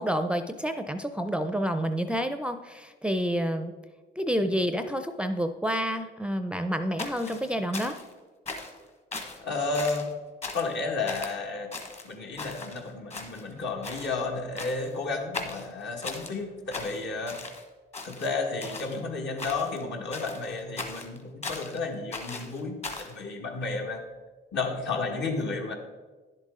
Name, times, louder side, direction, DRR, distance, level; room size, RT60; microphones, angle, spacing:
voice 1, 0.0-3.7 4.2-8.0, equal, 5° right, 7 dB, 0.5 m, -29 dB
sound 1, 7.0-8.1 8.5-8.8 9.1-9.4 9.7-10.1 10.4-10.8 11.1-11.4 11.7-12.8 13.1-13.6 13.8-14.1 14.6-14.9 15.3-16.3 16.7-17.6 17.9-19.0 19.4-19.8 20.1-21.8 22.1-23.1, left 3 dB, 35° left, 1.5 m, -38 dB
voice 2, 9.4-10.1 10.5-11.8 12.0-17.5 18.0-24.0 24.5-25.7, left 3 dB, 60° left, 2 dB, 1.6 m, -32 dB
10.5 x 7.5 x 3.7 m, 1.3 s
cardioid pair, 90°, 20 cm